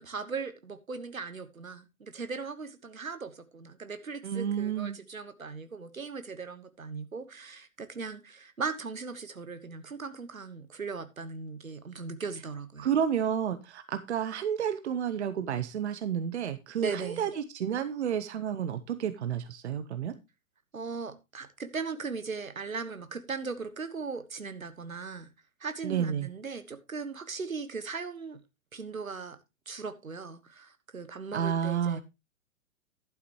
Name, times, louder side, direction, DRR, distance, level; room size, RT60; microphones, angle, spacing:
voice 1, 0.0-12.9 16.8-17.3 20.7-25.3 25.6-28.4 28.7-29.4 29.7-32.0, right 4 dB, 80° right, 1.4 m, -38 dB
voice 2, 4.2-5.0 12.8-20.1 25.8-26.3 31.3-32.0, right 8 dB, 55° right, 0.9 m, -31 dB
11.5 x 9.6 x 3.0 m
figure-of-eight pair, 115°, 41 cm